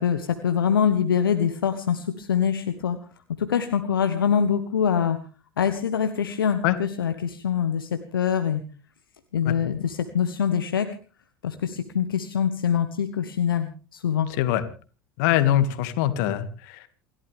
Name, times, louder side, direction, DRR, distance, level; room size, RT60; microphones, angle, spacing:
voice 1, 0.0-3.0 3.4-5.2 5.6-8.6 9.3-10.9 11.4-14.3, left 8 dB, 80° left, 8 dB, 1.4 m, -24 dB
voice 2, 15.2-16.9, left 12 dB, 60° left, 11 dB, 2.1 m, -23 dB
28.5 x 12.5 x 3.5 m, 0.37 s
figure-of-eight pair, 75°, 12 cm